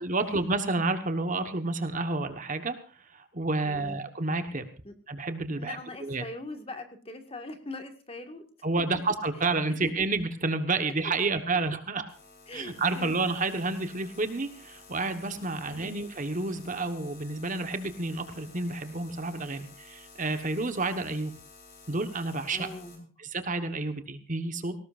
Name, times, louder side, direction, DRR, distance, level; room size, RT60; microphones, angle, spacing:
voice 1, 0.0-2.8 3.1-4.7 5.1-5.8 6.0-6.2 8.6-12.1 12.5-21.3 21.9-22.7 23.2-24.7, right 3 dB, 40° right, 8 dB, 1.3 m, -30 dB
voice 2, 3.6-4.0 4.8-4.9 5.6-8.5 12.5-13.2 15.6-16.0 22.5-23.1, left 2 dB, 30° left, 6 dB, 1.9 m, -42 dB
sound 1, 12.1-23.0, left 3 dB, 50° left, 5.2 m, -52 dB
20.0 x 18.0 x 2.6 m, 0.38 s
head